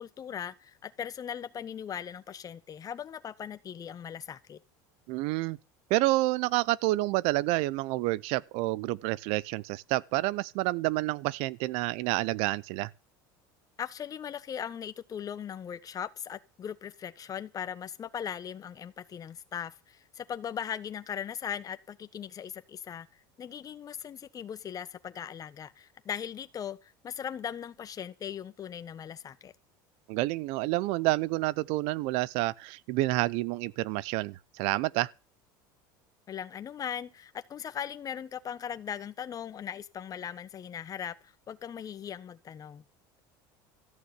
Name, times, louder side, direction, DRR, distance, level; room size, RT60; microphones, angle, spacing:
voice 1, 0.0-4.6 13.8-23.1 23.4-29.5 36.3-42.8, left 8 dB, 35° left, 1.2 m, -39 dB
voice 2, 5.1-5.6 5.9-12.9 30.1-35.1, right 19 dB, 70° right, 0.7 m, -29 dB
14.0 x 6.5 x 9.7 m
supercardioid pair, 110°, 11 cm